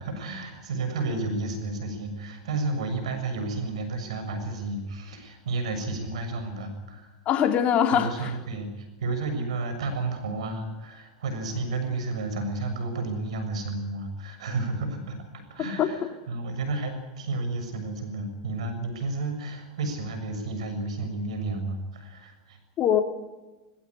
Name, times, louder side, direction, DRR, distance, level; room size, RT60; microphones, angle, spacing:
voice 1, 0.0-7.2 7.9-22.6, right 3 dB, 80° right, 7 dB, 7.0 m, -32 dB
voice 2, 7.2-8.4 15.6-15.9 22.8-23.0, left 9 dB, 40° left, 6 dB, 3.1 m, -23 dB
20.5 x 17.0 x 9.9 m, 1.1 s
hypercardioid pair, 105°, 3 cm